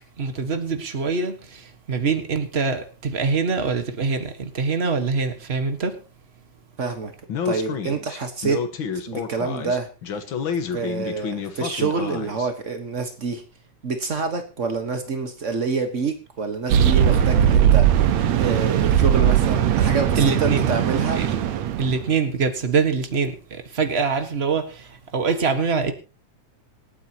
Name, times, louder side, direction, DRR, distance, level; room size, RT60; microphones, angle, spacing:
voice 1, 0.2-1.6 1.9-5.9 20.1-20.7 21.2-21.3 21.8-24.9 25.1-25.9, right 5 dB, 45° right, 0.8 m, -24 dB
voice 2, 6.8-7.1 7.4-8.6 9.1-9.9 10.7-13.4 13.8-21.2, right 4 dB, 85° right, 0.6 m, -27 dB
Speech, 7.3-12.5, left 6 dB, 50° left, 1.7 m, -29 dB
sound 1, 16.7-22.0, right 10 dB, 70° right, 2.2 m, -19 dB
26.5 x 9.1 x 2.9 m
omnidirectional pair, 3.5 m